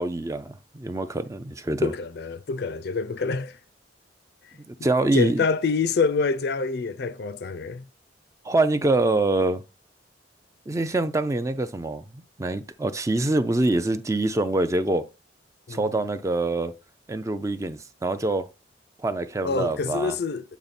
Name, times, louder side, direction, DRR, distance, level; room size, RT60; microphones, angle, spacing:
voice 1, 0.0-1.9 4.7-5.4 8.4-9.6 10.7-15.0 15.7-16.7 17.1-18.5 19.0-20.2, right 2 dB, 15° right, 0.4 m, -25 dB
voice 2, 1.8-3.6 5.1-7.8 15.7-16.0 19.4-20.6, left 4 dB, 60° left, 0.4 m, -26 dB
8.3 x 3.5 x 4.1 m
head